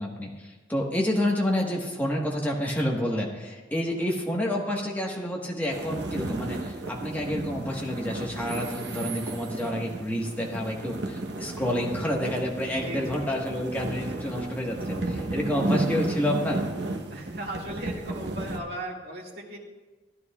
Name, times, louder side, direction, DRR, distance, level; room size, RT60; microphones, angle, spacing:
voice 1, 0.0-16.6, left 1 dB, 10° left, -2 dB, 1.3 m, -29 dB
sound 1, 5.7-18.6, right 2 dB, 80° right, 1.0 m, -33 dB
voice 2, 12.6-13.3 14.1-14.2 17.1-19.6, right 1 dB, 65° right, -3 dB, 2.1 m, -38 dB
16.0 x 11.0 x 2.4 m, 1.2 s
head